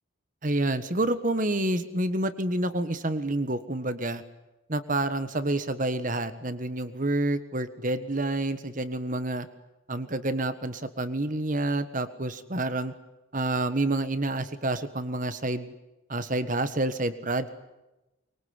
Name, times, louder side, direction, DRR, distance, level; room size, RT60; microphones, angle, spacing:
voice 1, 0.4-4.2 4.7-9.5 9.9-12.9 13.3-15.7 16.1-17.5, right 2 dB, 40° right, 12 dB, 1.5 m, -28 dB
24.0 x 23.0 x 9.7 m, 0.99 s
head